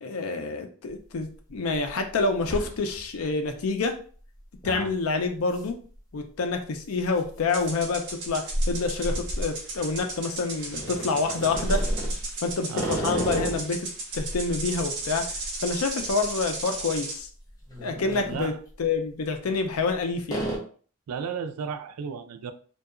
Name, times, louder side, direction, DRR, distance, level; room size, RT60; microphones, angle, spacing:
voice 1, 0.0-4.0 4.6-5.8 6.1-11.8 12.4-13.9 14.1-15.3 15.6-17.3 17.8-18.5 18.8-20.5, left 4 dB, 75° left, 5 dB, 0.5 m, -27 dB
sound 1, 0.9-1.0 1.5-1.9 2.2-3.2 3.6-3.7 4.6-4.9 5.5-5.7 6.0-6.1 7.0-10.1 10.7-13.7 14.1-16.5 16.8-17.0 17.5-18.5 19.4-19.9 20.3-20.6, right 1 dB, 15° left, 0.6 m, -32 dB
sound 2, 7.5-17.2, right 3 dB, 55° right, 0.9 m, -36 dB
voice 2, 12.7-13.0 18.2-18.6 21.1-22.5, right 6 dB, 90° right, 9 dB, 0.3 m, -34 dB
2.7 x 2.2 x 2.4 m, 0.43 s
head